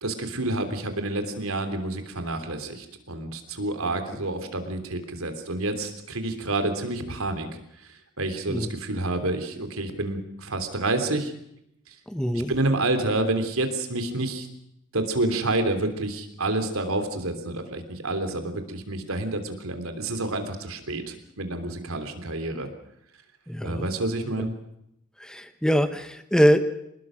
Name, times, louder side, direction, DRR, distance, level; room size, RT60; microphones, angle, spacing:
voice 1, 0.0-7.5 7.9-11.3 11.9-12.0 12.5-14.5 14.9-22.7 23.6-24.5, right 2 dB, 90° right, 8 dB, 3.2 m, -28 dB
voice 2, 12.1-12.5 23.5-23.9 24.4-24.5 25.2-26.7, equal, 5° left, 10 dB, 1.2 m, -23 dB
25.5 x 20.5 x 6.4 m, 0.77 s
head